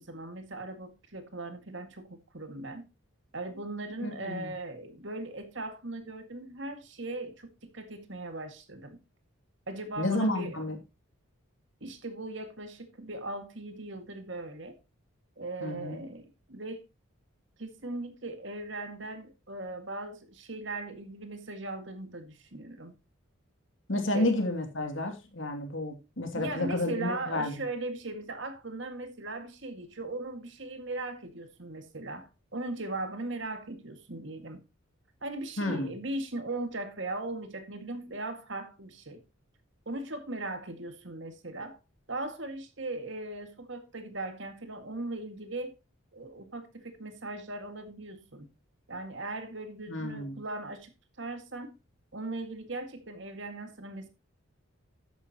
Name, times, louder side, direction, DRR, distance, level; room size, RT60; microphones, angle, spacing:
voice 1, 0.0-2.9 3.3-9.0 9.7-10.6 11.8-14.8 15.4-16.8 17.6-23.0 24.1-24.4 26.4-34.6 35.2-39.2 39.9-41.8 42.1-45.7 46.1-48.5 48.9-50.9 51.2-51.7 52.1-54.1, right 2 dB, 60° right, 2.0 m, -38 dB
voice 2, 4.0-4.5 10.0-10.8 15.6-16.0 23.9-27.6 35.6-35.9 49.9-50.4, left 1 dB, 65° left, 2.6 m, -31 dB
12.5 x 9.7 x 2.9 m
head